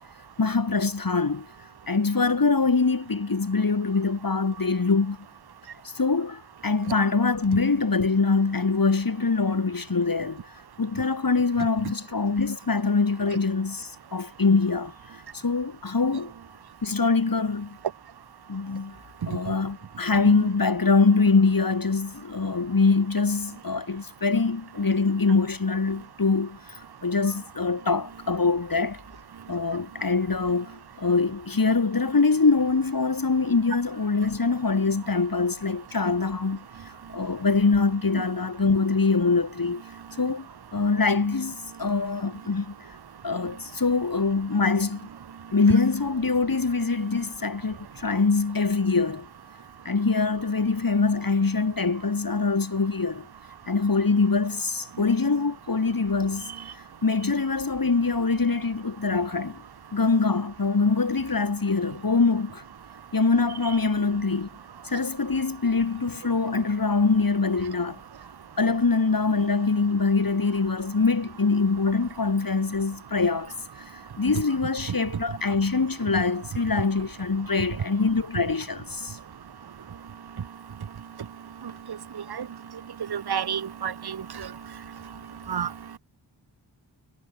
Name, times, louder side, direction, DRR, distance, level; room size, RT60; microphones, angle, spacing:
voice 1, 0.4-1.5 1.9-5.2 5.8-10.4 10.8-14.9 15.3-16.3 16.8-17.8 18.5-19.0 19.3-29.0 29.5-39.8 40.2-42.8 43.2-45.1 45.5-49.3 49.9-53.3 53.7-56.5 57.0-59.6 59.9-62.6 63.1-64.5 64.8-68.0 68.6-73.5 73.9-79.2, left 4 dB, 50° left, 7.0 m, -24 dB
voice 2, 83.1-84.5 85.5-85.7, right 8 dB, 60° right, 1.2 m, -30 dB
cardioid pair, 55°, 42 cm